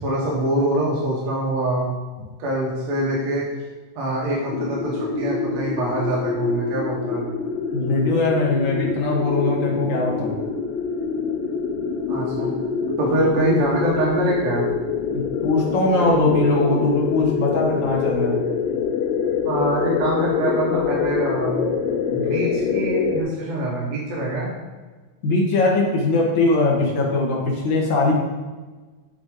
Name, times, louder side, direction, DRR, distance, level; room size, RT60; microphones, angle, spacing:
voice 1, 0.0-1.9 2.4-3.5 4.0-7.3 12.1-12.5 13.0-14.7 19.5-21.6 22.1-24.5, right 1 dB, 65° right, -5 dB, 2.2 m, -24 dB
sound 1, 4.5-23.2, left 6 dB, 85° left, 1.9 m, -25 dB
voice 2, 7.7-10.3 15.1-18.4 25.2-28.1, left 2 dB, 65° left, -3 dB, 0.7 m, -21 dB
7.9 x 3.9 x 3.7 m, 1.3 s
omnidirectional pair, 3.3 m